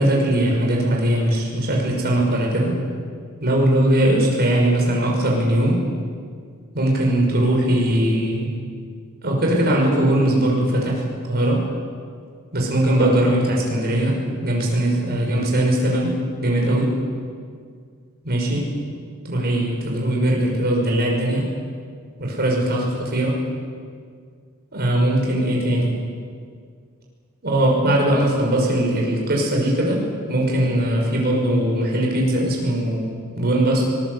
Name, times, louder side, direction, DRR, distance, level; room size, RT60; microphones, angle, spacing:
voice 1, 0.0-2.7 3.4-5.8 6.7-8.5 9.2-11.6 12.5-16.1 16.4-16.9 18.2-18.7 19.2-21.5 22.2-23.4 24.7-25.9 27.4-30.0 30.3-33.9, right 1 dB, 45° right, -1 dB, 5.9 m, -20 dB
24.0 x 20.0 x 8.1 m, 2.1 s
head